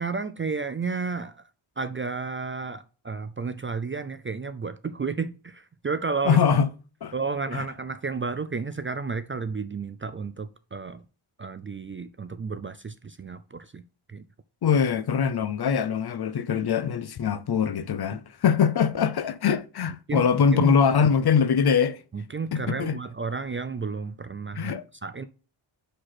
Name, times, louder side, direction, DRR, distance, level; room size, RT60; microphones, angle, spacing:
voice 1, 0.0-1.4 1.8-6.4 7.1-11.0 11.4-13.8 14.1-14.2 20.1-20.2 20.5-20.8 22.1-24.7 25.0-25.2, right 4 dB, 30° right, 0.4 m, -32 dB
voice 2, 6.2-6.7 7.0-7.1 7.5-7.6 14.6-22.0 22.5-23.0 24.5-24.8, left 6 dB, 50° left, 0.6 m, -23 dB
5.8 x 5.2 x 4.1 m
wide cardioid pair, 130°, 48 cm